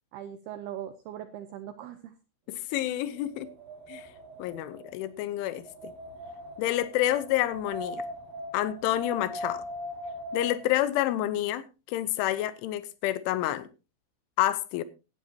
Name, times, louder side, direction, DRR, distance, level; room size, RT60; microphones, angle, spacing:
voice 1, 0.1-2.1, right 10 dB, 80° right, 2.3 m, -40 dB
voice 2, 2.5-3.5 3.9-4.1 4.4-5.9 6.6-8.0 8.5-9.6 10.3-13.7 14.4-14.8, left 14 dB, 80° left, 3.3 m, -29 dB
Wind, 2.9-10.8, left 1 dB, 55° right, 4.8 m, -40 dB
17.0 x 12.5 x 2.9 m
omnidirectional pair, 5.7 m